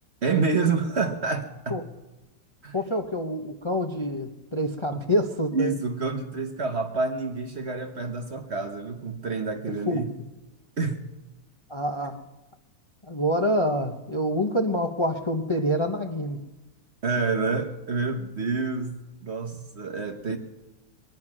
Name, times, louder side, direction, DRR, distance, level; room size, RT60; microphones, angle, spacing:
voice 1, 0.2-1.8 2.6-2.7 4.9-5.0 5.5-10.1 10.8-11.0 17.0-20.4, right 4 dB, 45° right, 6 dB, 1.2 m, -28 dB
voice 2, 2.7-5.8 9.9-10.0 11.7-12.2 13.1-16.4, equal, 25° left, 3 dB, 0.7 m, -26 dB
22.0 x 10.5 x 6.1 m, 1.0 s
omnidirectional pair, 1.9 m